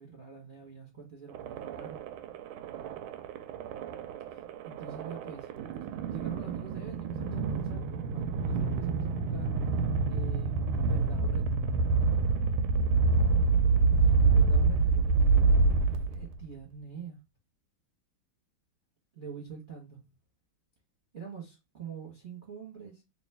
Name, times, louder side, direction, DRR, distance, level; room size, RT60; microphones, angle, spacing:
voice 1, 0.0-2.0 4.6-5.5 6.1-9.5 10.1-11.6 14.0-17.2 19.1-20.0 21.1-23.0, right 6 dB, 30° right, 1.1 m, -44 dB
sound 1, 1.3-16.4, right 4 dB, 80° right, 1.4 m, -27 dB
3.1 x 2.9 x 3.3 m
omnidirectional pair, 2.3 m